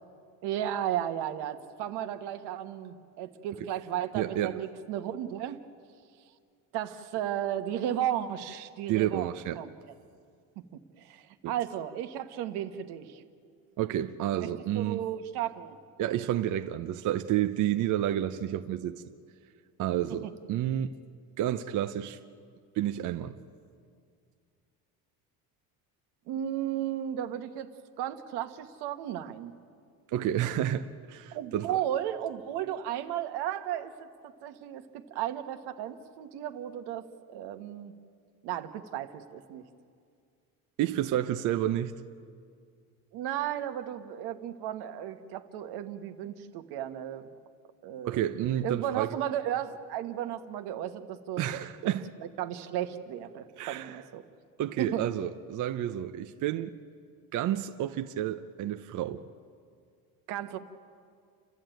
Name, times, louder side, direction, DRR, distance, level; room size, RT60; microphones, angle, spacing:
voice 1, 0.4-5.6 6.7-9.7 11.0-13.2 14.3-14.5 14.7-15.7 20.2-20.3 26.3-27.7 28.0-29.5 31.3-34.1 34.4-37.9 38.4-39.6 43.1-47.3 47.8-48.2 48.6-51.4 52.2-54.2 54.8-55.1 60.3-60.6, right 11 dB, 85° right, 1.4 m, -34 dB
voice 2, 4.1-4.6 8.9-9.6 11.4-11.5 13.8-15.0 16.0-19.0 19.8-21.0 21.4-22.2 22.7-23.4 30.1-31.8 40.8-41.9 48.0-49.1 51.4-52.1 53.6-54.0 54.6-56.7 57.3-59.2, right 12 dB, 50° right, 0.7 m, -30 dB
29.5 x 13.0 x 9.1 m
cardioid pair, 150°, 38 cm